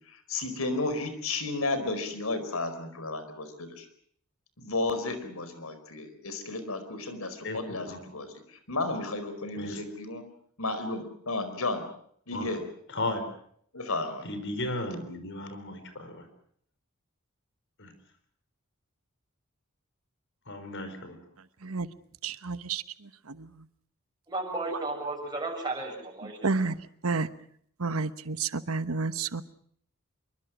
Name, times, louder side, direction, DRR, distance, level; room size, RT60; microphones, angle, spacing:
voice 1, 0.1-3.9 4.6-10.2 10.6-11.8 12.3-12.6 13.7-14.3, left 2 dB, 85° left, 10 dB, 4.8 m, -33 dB
voice 2, 7.4-8.1 9.6-9.8 12.3-12.5 12.9-13.3 14.2-16.3 17.8-17.9 20.5-21.2, left 2 dB, 60° left, 9 dB, 5.1 m, -35 dB
voice 3, 22.2-22.8 23.3-23.5 26.4-26.7 27.0-27.3 27.8-29.4, right 4 dB, 75° right, 13 dB, 1.1 m, -30 dB
voice 4, 24.3-26.6, right 2 dB, 20° right, 0 dB, 7.0 m, -34 dB
25.5 x 23.5 x 6.3 m, 0.64 s
head